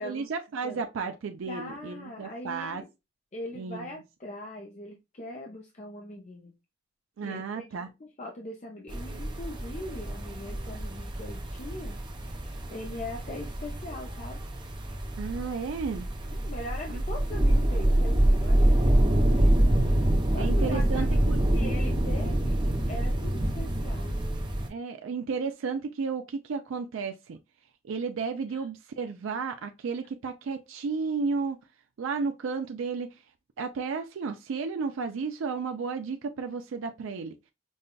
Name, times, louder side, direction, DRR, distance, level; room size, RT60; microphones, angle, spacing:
voice 1, 0.0-2.8 3.5-4.0 7.2-7.9 15.2-16.1 16.9-17.0 20.4-21.4 24.7-27.4 27.9-31.6 32.0-33.1 33.6-37.4, right 5 dB, 85° right, 0.4 m, -33 dB
voice 2, 1.5-2.9 3.3-6.5 7.2-12.0 12.4-14.4 16.2-19.8 20.3-21.2 21.5-22.5 22.9-24.2 28.5-28.6, left 1 dB, 35° left, 0.5 m, -41 dB
sound 1, 8.9-24.7, right 1 dB, 25° right, 0.6 m, -26 dB
5.3 x 2.2 x 2.2 m
head